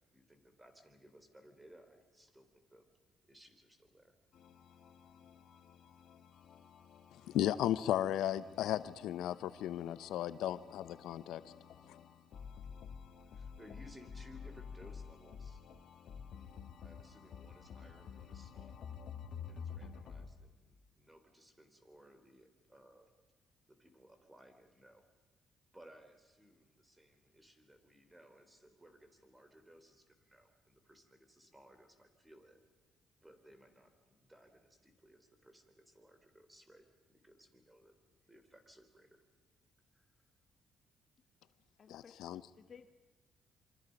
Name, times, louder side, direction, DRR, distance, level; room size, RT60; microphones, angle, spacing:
voice 1, 0.1-2.5 2.7-2.8 3.3-4.1 13.4-15.6 16.8-18.8 19.5-20.5 21.0-23.1 23.8-25.0 25.7-30.0 30.3-32.6 33.2-33.9 34.3-36.8 37.2-37.9 38.3-39.1, equal, 10° right, 7 dB, 3.8 m, -61 dB
sound 1, 4.3-20.3, left 6 dB, 70° left, 1.7 m, -51 dB
voice 2, 7.3-11.4 41.9-42.4, left 12 dB, 85° left, 15 dB, 0.7 m, -35 dB
voice 3, 41.8-42.9, left 6 dB, 50° left, 9 dB, 1.3 m, -58 dB
27.5 x 25.0 x 5.3 m, 1.3 s
cardioid pair, 90°, 0 cm